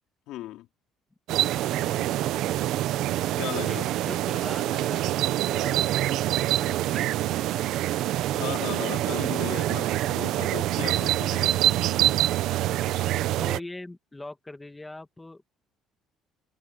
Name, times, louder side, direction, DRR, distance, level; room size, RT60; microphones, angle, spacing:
voice 1, 0.3-0.7 3.4-3.9 8.3-11.6, left 15 dB, 75° left, 3.4 m, -36 dB
sound 1, 1.3-13.6, right 14 dB, 65° right, 0.8 m, -26 dB
voice 2, 1.7-2.5 3.5-5.9 6.6-8.1 13.4-15.4, left 2 dB, 10° left, 1.4 m, -42 dB
cardioid pair, 160°, 0 cm